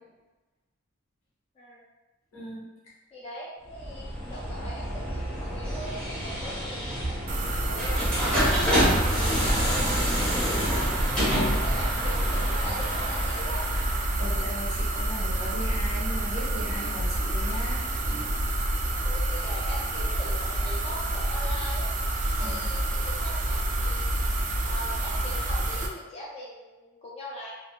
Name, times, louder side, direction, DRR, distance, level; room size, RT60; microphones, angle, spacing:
voice 1, 2.3-2.6 8.7-9.0 13.9-18.4 22.4-22.6, equal, 85° left, -7 dB, 1.3 m, -38 dB
voice 2, 3.1-7.0 7.6-8.3 9.0-9.7 10.6-11.1 11.6-13.6 19.0-21.9 22.4-24.1 24.6-27.5, equal, 30° left, -5 dB, 0.5 m, -41 dB
sound 1, 3.7-14.4, equal, 5° left, 0.8 m, -29 dB
sound 2, 7.3-25.9, right 1 dB, 40° right, 0.3 m, -28 dB
3.4 x 2.4 x 2.2 m, 1.1 s
head